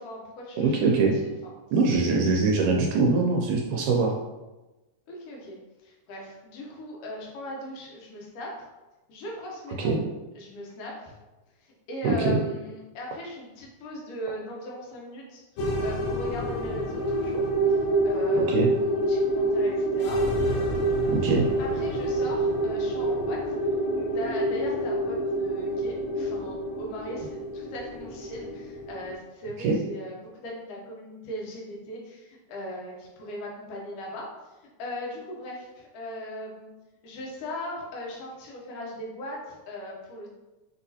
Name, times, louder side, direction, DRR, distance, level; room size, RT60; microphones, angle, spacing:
voice 1, 0.0-1.5 1.9-2.2 5.1-5.6 5.8-8.6 9.1-10.0 10.3-11.1 11.6-20.2 21.6-23.5 23.9-34.3 34.8-36.7 37.0-40.3, left 1 dB, 70° left, -2 dB, 1.5 m, -39 dB
voice 2, 0.6-1.2 1.7-4.2 9.8-10.1 12.0-12.4 18.4-18.7 21.1-21.5 29.6-29.8, right 3 dB, 80° right, 0 dB, 2.0 m, -23 dB
sound 1, 15.6-29.1, right 1 dB, 90° left, 1.4 m, -27 dB
5.9 x 2.9 x 2.7 m, 1.1 s
omnidirectional pair, 3.7 m